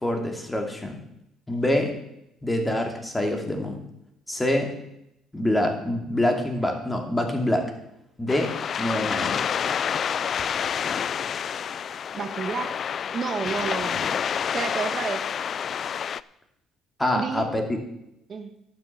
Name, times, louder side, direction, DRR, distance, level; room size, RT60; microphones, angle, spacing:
voice 1, 0.0-1.0 1.5-2.0 2.4-3.8 4.3-4.7 5.3-7.7 8.2-9.4 17.0-17.6, left 1 dB, 15° left, 3 dB, 2.6 m, -25 dB
sound 1, 8.3-16.2, left 8 dB, 50° left, 0.4 m, -28 dB
voice 2, 12.1-12.8 13.1-14.2 14.5-15.2 17.1-17.4 18.3-18.5, right 5 dB, 45° right, 7 dB, 1.4 m, -30 dB
12.0 x 7.6 x 7.3 m, 0.81 s
cardioid pair, 90°, 0 cm